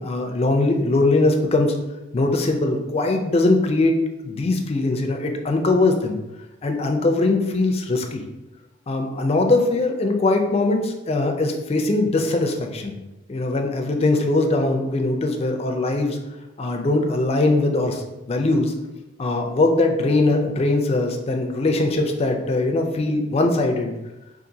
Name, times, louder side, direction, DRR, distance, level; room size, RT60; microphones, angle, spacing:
voice 1, 0.0-1.7 2.1-3.9 4.2-6.2 6.6-8.2 8.9-12.9 13.3-16.2 16.6-18.0 18.3-18.7 19.2-24.0, left 2 dB, 30° left, 3 dB, 0.4 m, -21 dB
3.8 x 2.5 x 2.6 m, 1.0 s
head